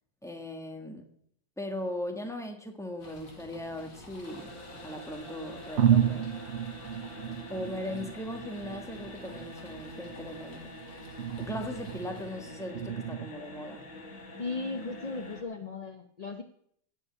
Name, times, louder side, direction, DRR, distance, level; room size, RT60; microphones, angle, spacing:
voice 1, 0.2-1.1 1.6-4.5 4.8-6.3 7.5-10.7 11.4-13.8, left 1 dB, ahead, 3 dB, 1.4 m, -38 dB
sound 1, 3.0-12.7, left 1 dB, 90° left, 3.0 m, -52 dB
sound 2, 3.4-4.7 5.3-5.4 5.8-13.3, right 9 dB, 70° right, 0.6 m, -32 dB
sound 3, 4.2-15.4, left 1 dB, 55° left, 2.6 m, -46 dB
voice 2, 14.4-16.4, left 3 dB, 35° left, 5 dB, 0.6 m, -36 dB
15.5 x 5.5 x 9.6 m, 0.68 s
omnidirectional pair, 1.9 m